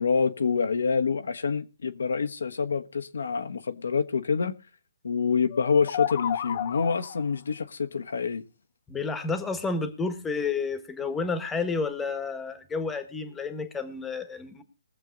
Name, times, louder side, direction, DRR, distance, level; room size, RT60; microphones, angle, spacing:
voice 1, 0.0-4.5 5.0-8.4, left 5 dB, 80° left, 1.3 m, -26 dB
sound 1, 5.5-7.3, left 10 dB, 45° left, 1.0 m, -32 dB
voice 2, 8.9-14.6, left 4 dB, 10° left, 1.4 m, -30 dB
21.5 x 7.6 x 3.9 m
hypercardioid pair, 150°, 0 cm